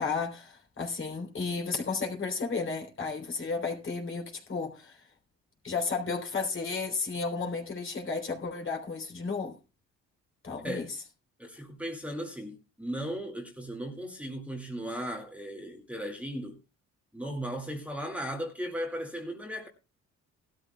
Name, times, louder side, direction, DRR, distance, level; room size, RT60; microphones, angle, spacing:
voice 1, 0.0-5.0 5.6-9.6 10.4-10.9, left 4 dB, 40° left, 3.6 m, -33 dB
voice 2, 11.4-16.6 17.1-19.7, equal, 5° right, 2.0 m, -36 dB
18.5 x 12.5 x 2.3 m
cardioid pair, 90°, 30 cm